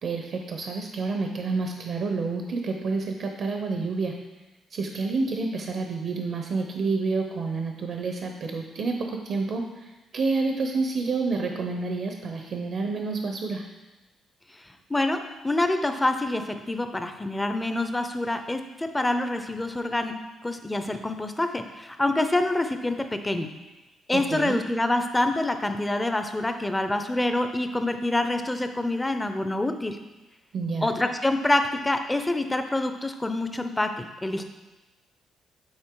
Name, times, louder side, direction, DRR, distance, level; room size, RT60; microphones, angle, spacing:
voice 1, 0.0-4.1 4.7-13.6 24.1-24.6 30.5-30.9, right 4 dB, 60° right, 3 dB, 0.7 m, -29 dB
voice 2, 14.5-20.1 20.4-23.5 24.1-30.0 30.8-34.4, left 2 dB, 15° left, 7 dB, 0.6 m, -26 dB
8.8 x 4.0 x 3.8 m, 1.1 s
cardioid pair, 90°, 0 cm